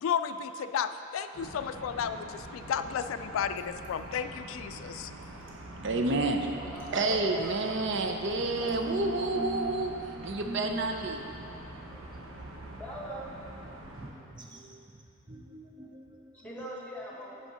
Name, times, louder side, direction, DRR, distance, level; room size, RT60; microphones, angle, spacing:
voice 1, 0.0-5.1, left 7 dB, 80° left, 10 dB, 0.3 m, -33 dB
sound 1, 1.3-14.1, right 1 dB, 85° right, 0.9 m, -45 dB
sound 2, 3.5-3.9 5.0-5.5 6.5-6.8 7.7-8.0 8.3-8.8, equal, 45° right, 1.3 m, -47 dB
voice 2, 5.8-6.4 6.9-9.9 10.2-11.3, right 2 dB, 65° right, 4 dB, 0.6 m, -29 dB
voice 3, 6.7-7.5 12.8-13.2 16.4-17.4, equal, 5° left, -4 dB, 1.2 m, -39 dB
voice 4, 8.6-9.7 10.2-10.8 11.9-12.0 13.8-14.1 14.3-14.8 15.3-16.0 16.4-16.6, equal, 25° right, 1 dB, 0.6 m, -41 dB
8.0 x 5.7 x 4.9 m, 2.7 s
head